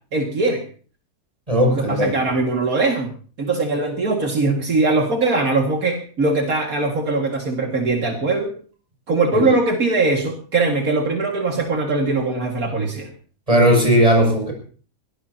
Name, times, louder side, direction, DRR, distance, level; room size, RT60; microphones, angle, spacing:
voice 1, 0.1-0.6 1.7-3.1 3.4-8.5 9.1-13.1, right 3 dB, 75° right, 1 dB, 2.6 m, -21 dB
voice 2, 1.5-2.1 9.3-9.5 13.5-14.5, equal, 25° right, 0 dB, 7.3 m, -16 dB
22.5 x 18.0 x 2.9 m, 0.41 s
omnidirectional pair, 1.5 m